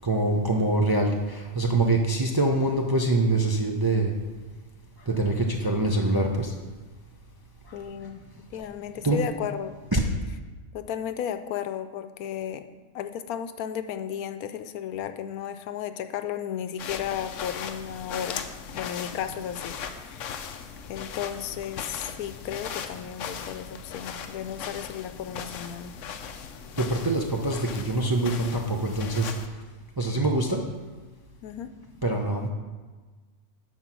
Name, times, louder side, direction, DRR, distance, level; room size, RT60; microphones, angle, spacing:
voice 1, 0.0-4.1 5.1-6.5 9.0-9.2 9.9-10.0 26.8-29.3 30.0-30.6 32.0-32.5, right 2 dB, 30° right, 1 dB, 0.4 m, -24 dB
voice 2, 7.7-8.2 8.5-9.8 10.7-12.6 12.9-18.4 18.7-19.8 20.0-20.4 20.9-26.0 31.4-31.7, left 9 dB, 90° left, 9 dB, 1.1 m, -34 dB
sound 1, 16.8-29.5, left 7 dB, 65° left, 0.9 m, -38 dB
10.0 x 4.3 x 6.0 m, 1.3 s
omnidirectional pair, 1.5 m